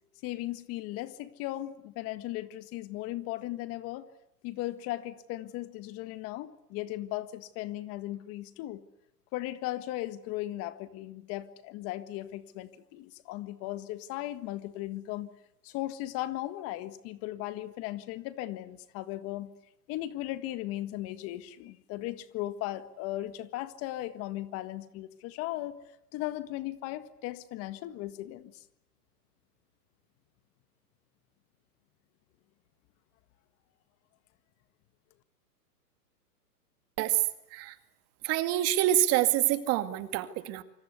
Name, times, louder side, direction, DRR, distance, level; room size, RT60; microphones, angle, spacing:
voice 1, 0.2-4.1 4.4-8.8 9.3-15.3 15.6-19.5 19.9-25.8 26.1-28.6, left 15 dB, 30° left, 12 dB, 1.7 m, -37 dB
voice 2, 38.2-40.6, right 13 dB, 30° right, 10 dB, 2.2 m, -26 dB
27.5 x 26.0 x 8.3 m, 0.79 s
hypercardioid pair, 135°, 48 cm